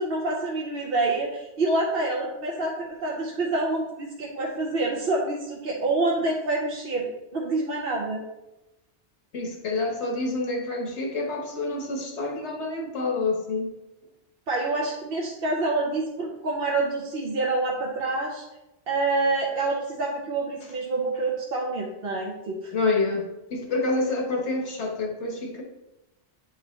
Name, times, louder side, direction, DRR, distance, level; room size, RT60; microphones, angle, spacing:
voice 1, 0.0-2.7 3.0-8.2 14.5-18.5 18.9-22.7, right 2 dB, 60° right, -2 dB, 1.0 m, -27 dB
voice 2, 9.3-13.7 22.7-25.6, left 3 dB, 75° left, 2 dB, 1.4 m, -28 dB
8.7 x 4.0 x 3.1 m, 0.96 s
omnidirectional pair, 1.2 m